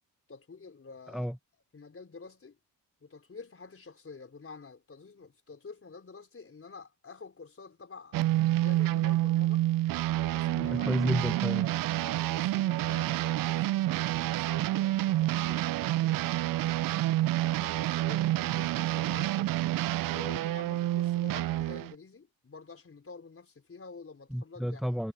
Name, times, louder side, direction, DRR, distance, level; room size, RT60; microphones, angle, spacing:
voice 1, 0.3-1.3 1.7-2.6 3.0-8.2 8.5-9.6 10.2-10.9 12.0-17.1 17.6-19.5 20.1-24.8, left 4 dB, 35° left, 4.8 m, -48 dB
sound 1, 8.1-21.9, right 15 dB, 60° right, 0.5 m, -28 dB
voice 2, 10.5-11.7 24.3-25.1, equal, ahead, 0.8 m, -31 dB
cardioid pair, 80°, 38 cm